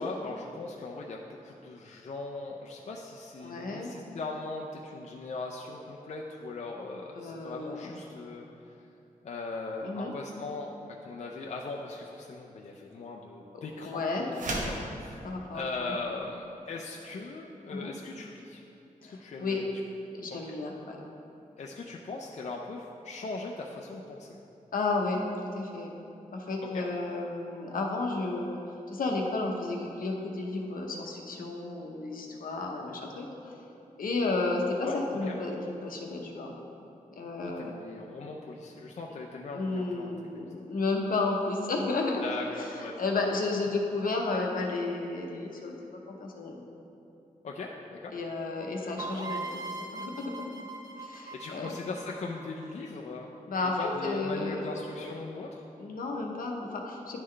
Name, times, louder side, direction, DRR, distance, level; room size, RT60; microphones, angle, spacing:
voice 1, 0.0-8.5 9.2-14.0 14.3-15.2 15.5-18.6 19.2-19.6 20.3-20.6 21.6-24.4 26.7-26.9 34.8-35.4 37.4-40.1 42.2-43.0 47.4-48.1 51.3-53.3 53.6-55.6, left 3 dB, 50° left, -1 dB, 0.4 m, -39 dB
voice 2, 3.4-3.9 7.1-8.0 9.8-10.1 13.5-14.3 15.2-16.0 17.7-17.9 19.0-19.6 20.1-21.0 24.7-25.2 25.5-25.9 26.3-28.6 28.9-33.6 34.0-36.5 37.2-37.7 39.5-42.3 42.6-46.6 48.1-50.5 51.0-51.7 53.5-54.7 55.8-57.2, left 3 dB, 75° left, 1 dB, 0.8 m, -32 dB
sound 1, 14.3-14.9, right 1 dB, 60° right, 0.8 m, -32 dB
sound 2, 49.0-52.7, right 3 dB, 25° right, 0.5 m, -40 dB
10.5 x 3.8 x 3.2 m, 2.8 s
wide cardioid pair, 150°, 15 cm